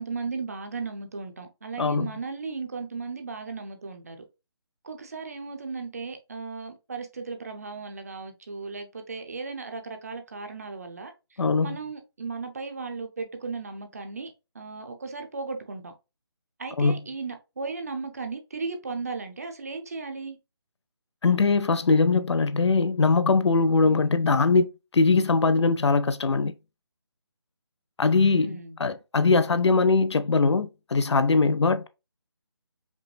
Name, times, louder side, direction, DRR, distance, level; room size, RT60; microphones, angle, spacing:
voice 1, 0.0-4.2 4.8-11.1 11.6-15.9 16.6-20.4 23.8-24.1 28.2-28.8, right 4 dB, 35° right, 0.6 m, -36 dB
voice 2, 1.8-2.1 11.4-11.8 16.8-17.0 21.2-24.7 24.9-26.5 28.0-31.9, left 4 dB, 80° left, 0.5 m, -21 dB
5.1 x 2.1 x 3.2 m
hypercardioid pair, 175°, 14 cm